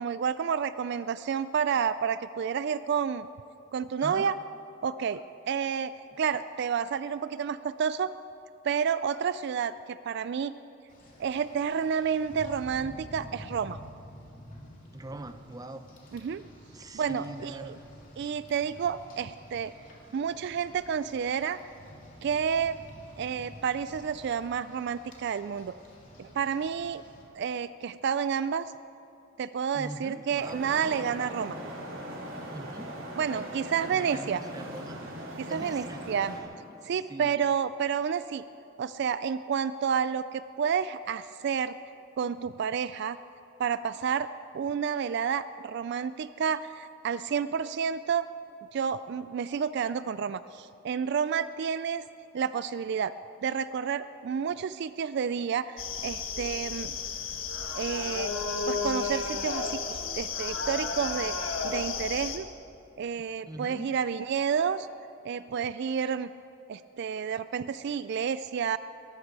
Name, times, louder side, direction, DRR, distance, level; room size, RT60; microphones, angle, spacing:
voice 1, 0.0-3.3 3.7-4.3 4.8-5.9 6.2-8.1 8.6-10.5 11.2-13.8 16.1-16.4 16.9-17.7 18.2-19.7 20.1-21.6 22.2-22.8 23.2-25.7 26.2-27.0 27.4-28.7 29.4-31.6 33.2-34.4 35.4-36.4 36.8-38.4 38.8-41.7 42.2-43.2 43.6-44.3 44.5-48.3 48.7-52.1 52.3-53.1 53.4-57.0 57.7-58.3 58.7-62.5 63.0-64.9 65.2-66.3 66.7-68.8, right 7 dB, 60° right, 14 dB, 0.3 m, -30 dB
Rain, 10.9-27.2, left 1 dB, 45° left, 2.9 m, -50 dB
voice 2, 14.9-15.8 16.7-17.8 29.7-30.6 32.5-32.9 33.9-35.0 35.5-36.0 36.4-36.5 36.8-37.3 63.4-63.9, right 2 dB, 20° right, 9 dB, 0.6 m, -42 dB
Traffic noise roadway noise, 30.4-36.4, right 1 dB, 80° right, 3.4 m, -40 dB
sound 1, 55.8-62.4, left 5 dB, 80° left, 1.5 m, -33 dB
22.5 x 13.5 x 4.8 m, 2.9 s
head